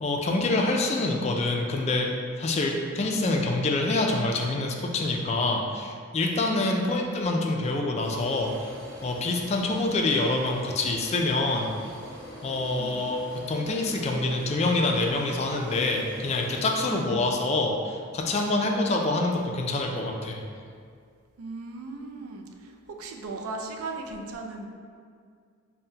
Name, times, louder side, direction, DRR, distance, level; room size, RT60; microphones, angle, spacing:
voice 1, 0.0-2.1 2.4-8.5 9.0-11.7 12.4-20.4, left 2 dB, 30° left, 1 dB, 0.3 m, -26 dB
voice 2, 6.4-7.2 12.8-13.0 16.8-17.1 21.4-24.7, right 3 dB, 90° right, 2 dB, 0.4 m, -38 dB
sound 1, 8.0-16.9, equal, ahead, 1.3 m, -44 dB
5.4 x 2.1 x 2.7 m, 2.2 s
head